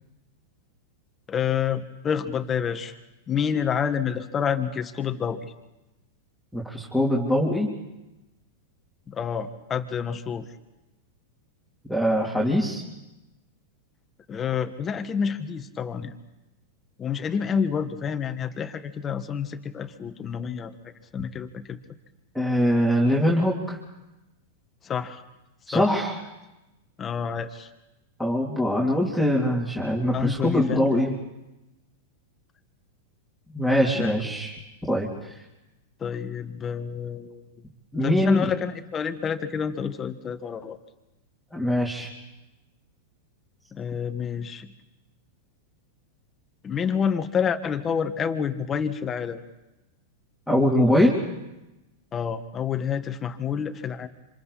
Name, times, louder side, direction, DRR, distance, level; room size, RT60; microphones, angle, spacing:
voice 1, 1.3-2.9 3.3-5.5 9.1-10.5 14.3-16.1 17.0-20.7 21.1-21.8 24.8-25.2 25.7-25.9 27.0-27.7 30.1-31.0 33.9-34.3 36.0-37.4 38.0-40.8 43.7-44.7 46.6-49.4 52.1-54.1, left 7 dB, 25° left, 7 dB, 1.7 m, -28 dB
voice 2, 6.5-7.7 11.9-12.8 22.3-23.8 25.7-26.1 28.2-31.1 33.5-34.5 34.9-35.3 37.9-38.5 41.5-42.1 50.5-51.1, equal, ahead, -4 dB, 3.3 m, -22 dB
27.5 x 26.5 x 4.3 m, 0.98 s
hypercardioid pair, 115°, 0 cm